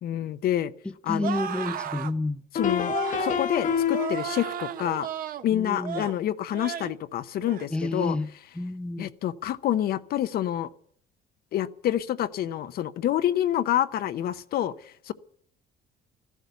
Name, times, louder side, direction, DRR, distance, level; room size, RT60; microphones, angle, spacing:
voice 1, 0.0-0.7 1.0-1.3 2.5-2.9 3.2-5.1 5.4-8.2 9.0-10.7 11.5-15.1, left 11 dB, 65° left, 0.8 m, -27 dB
voice 2, 1.1-2.4 5.5-6.1 7.7-8.3 8.6-9.1, left 2 dB, 5° left, 0.6 m, -29 dB
sound 1, 1.2-2.1 2.9-3.4 3.9-5.4 5.8-6.2 6.5-7.0 7.4-7.7, right 9 dB, 60° right, 1.1 m, -34 dB
sound 2, 1.3-1.4 2.6-4.5, left 7 dB, 50° left, 1.2 m, -27 dB
14.0 x 12.0 x 8.1 m
cardioid pair, 110°, 17 cm